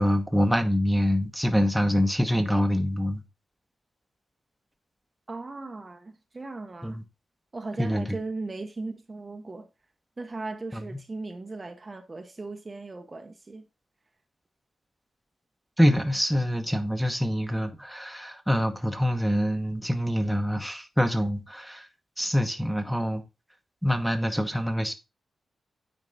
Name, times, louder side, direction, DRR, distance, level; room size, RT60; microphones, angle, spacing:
voice 1, 0.0-3.2 6.8-7.0 7.8-8.2 10.7-10.8 15.8-21.9 22.2-23.2 23.8-24.9, equal, ahead, 1.0 m, -25 dB
voice 2, 5.3-7.0 7.5-9.7 10.2-13.7, right 3 dB, 25° right, 0.7 m, -37 dB
9.0 x 4.4 x 3.9 m
wide cardioid pair, 125°, 0 cm